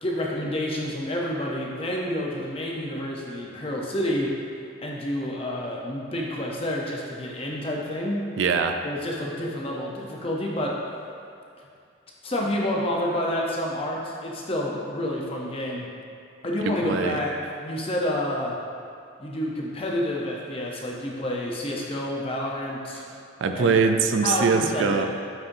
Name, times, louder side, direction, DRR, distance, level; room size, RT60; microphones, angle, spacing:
voice 1, 0.0-4.3 4.8-8.2 8.8-10.8 12.2-15.9 16.4-17.3 17.6-18.6 19.2-23.0 23.5-23.8 24.2-25.1, left 1 dB, 30° left, -2 dB, 0.7 m, -29 dB
voice 2, 8.4-8.8 16.6-17.2 23.4-25.1, right 5 dB, 75° right, 6 dB, 0.4 m, -22 dB
8.7 x 4.3 x 2.6 m, 2.4 s
head